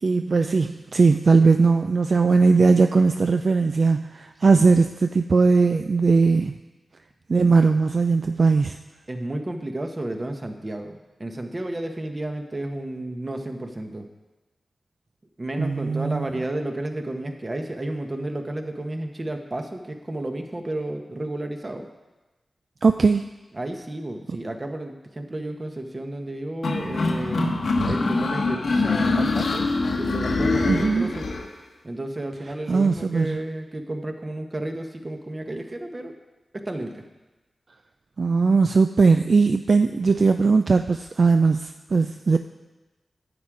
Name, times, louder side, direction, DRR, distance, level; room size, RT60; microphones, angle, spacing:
voice 1, 0.0-6.6 7.3-8.8 15.6-16.3 22.8-23.2 30.7-31.1 32.7-33.4 38.2-42.4, right 4 dB, 60° right, 7 dB, 0.3 m, -19 dB
voice 2, 4.4-4.7 9.1-14.1 15.4-21.9 23.5-29.7 30.0-31.2 31.8-36.1 36.5-37.0, right 1 dB, 35° right, 4 dB, 1.2 m, -32 dB
sound 1, 26.6-31.4, left 3 dB, 80° left, 1.0 m, -24 dB
9.8 x 7.8 x 4.8 m, 1.1 s
cardioid pair, 55°, 0 cm